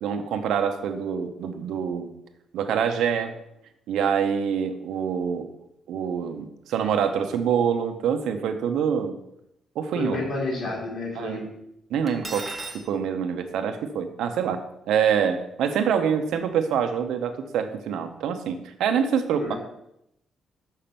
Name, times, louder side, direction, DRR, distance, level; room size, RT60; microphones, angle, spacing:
voice 1, 0.0-2.1 2.5-3.3 3.9-5.5 5.9-9.2 9.7-10.2 11.2-11.4 11.9-12.5 12.7-19.6, right 7 dB, 85° right, 7 dB, 0.9 m, -25 dB
voice 2, 9.9-11.5 19.4-19.6, left 2 dB, 50° left, -4 dB, 2.9 m, -30 dB
Cutlery silverware, 12.1-12.8, right 2 dB, 10° right, 0.8 m, -35 dB
6.5 x 5.8 x 6.9 m, 0.80 s
cardioid pair, 165°, 0 cm